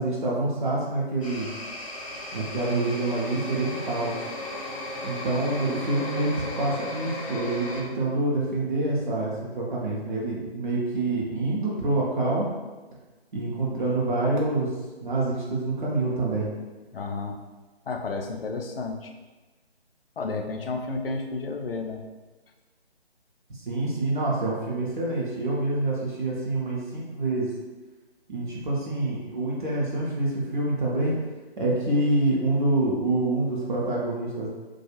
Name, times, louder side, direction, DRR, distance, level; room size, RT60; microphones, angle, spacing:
voice 1, 0.0-1.5 2.3-4.2 5.0-12.5 13.3-14.7 15.0-16.5 23.5-27.5 28.3-31.1 31.6-34.5, right 2 dB, 50° right, -4 dB, 0.7 m, -26 dB
sound 1, 1.2-7.8, left 1 dB, 30° left, 0.7 m, -35 dB
voice 2, 16.9-17.4 17.9-19.1 20.2-22.0, left 3 dB, 65° left, 4 dB, 0.4 m, -31 dB
2.3 x 2.3 x 2.8 m, 1.2 s
figure-of-eight pair, 150°, 32 cm